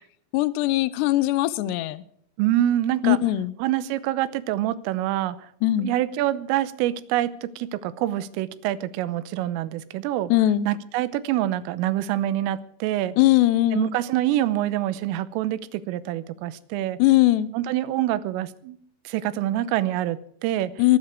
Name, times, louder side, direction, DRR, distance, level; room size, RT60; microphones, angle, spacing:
voice 1, 0.3-2.0 3.0-3.5 5.6-5.9 10.3-10.7 13.2-13.9 17.0-17.5 20.8-21.0, left 15 dB, 80° left, 16 dB, 2.7 m, -20 dB
voice 2, 2.4-3.2 3.6-5.4 5.8-10.3 10.7-13.2 13.7-17.0 17.5-18.8 19.1-20.7, right 13 dB, 85° right, 16 dB, 3.5 m, -26 dB
23.0 x 11.0 x 4.7 m, 0.63 s
omnidirectional pair, 5.7 m